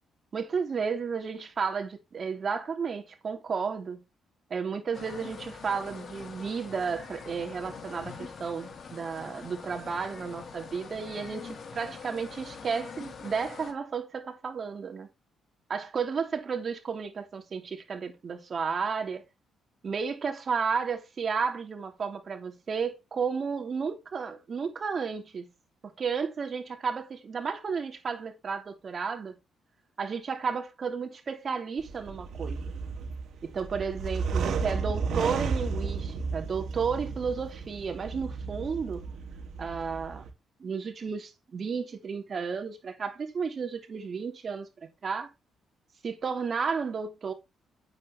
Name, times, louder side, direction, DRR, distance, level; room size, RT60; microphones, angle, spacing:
voice 1, 0.3-4.0 4.5-15.1 15.7-19.2 19.8-25.5 26.0-29.4 30.0-32.7 33.4-39.1 39.6-40.2 40.6-44.7 45.0-45.3 46.0-47.3, right 5 dB, 45° right, 2.9 m, -32 dB
sound 1, 4.9-13.7, left 5 dB, 50° left, 2.7 m, -44 dB
sound 2, 31.8-40.3, right 5 dB, 70° right, 2.7 m, -33 dB
9.3 x 7.9 x 3.4 m
cardioid pair, 90°, 0 cm